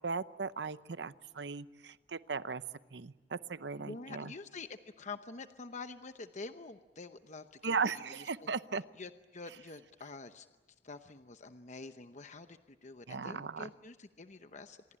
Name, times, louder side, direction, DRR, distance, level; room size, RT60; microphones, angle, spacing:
voice 1, 0.0-2.6 2.9-4.3 7.6-8.8 13.1-13.7, right 5 dB, 75° right, 15 dB, 0.8 m, -37 dB
voice 2, 3.8-8.5 8.9-10.5 10.8-15.0, left 3 dB, 45° left, 9 dB, 0.9 m, -47 dB
26.5 x 22.5 x 8.8 m, 1.2 s
head